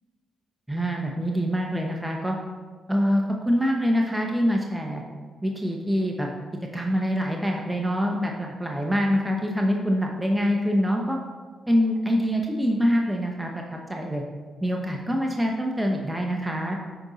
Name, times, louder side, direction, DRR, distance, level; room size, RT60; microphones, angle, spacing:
voice 1, 0.7-2.4 2.9-5.0 5.4-6.3 6.7-11.2 11.7-14.2 14.6-16.8, equal, 10° right, 0 dB, 1.0 m, -25 dB
8.8 x 5.3 x 4.1 m, 1.5 s
cardioid pair, 65°, 0 cm